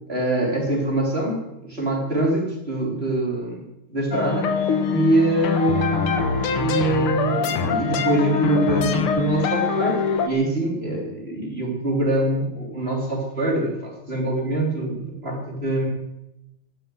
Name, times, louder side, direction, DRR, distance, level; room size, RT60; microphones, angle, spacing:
voice 1, 0.0-4.5 4.9-6.2 6.6-10.0 10.2-15.9, right 1 dB, 25° right, -1 dB, 3.9 m, -24 dB
sound 1, 4.1-10.3, left 6 dB, 85° left, 2.3 m, -23 dB
12.5 x 11.5 x 7.9 m, 0.90 s
omnidirectional pair, 2.3 m